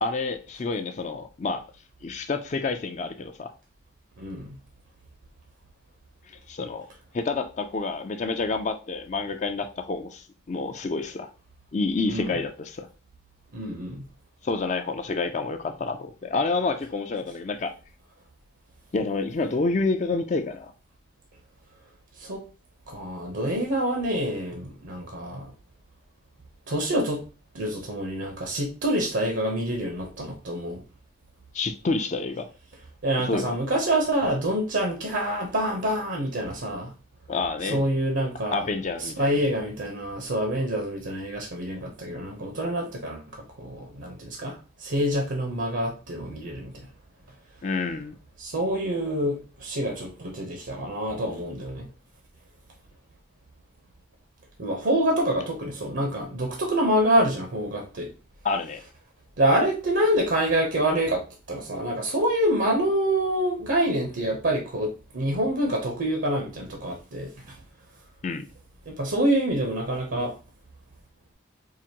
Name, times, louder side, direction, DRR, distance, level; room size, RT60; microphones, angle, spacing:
voice 1, 0.0-1.6 2.0-3.5 6.5-6.9 7.1-11.3 11.7-12.9 14.4-17.7 18.9-20.7 31.5-32.5 33.3-33.6 37.3-37.8 38.5-39.4 47.6-48.1 58.4-58.8 68.2-68.5, left 3 dB, 40° left, 0.4 m, -28 dB
voice 2, 4.2-4.6 12.1-12.4 13.5-14.1 22.2-22.4 22.9-25.5 26.7-27.2 27.5-30.8 33.0-36.9 37.6-38.6 39.0-46.7 48.4-51.9 54.6-58.1 59.4-67.3 68.9-70.3, right 1 dB, 75° right, 0.8 m, -26 dB
4.8 x 2.5 x 2.8 m
head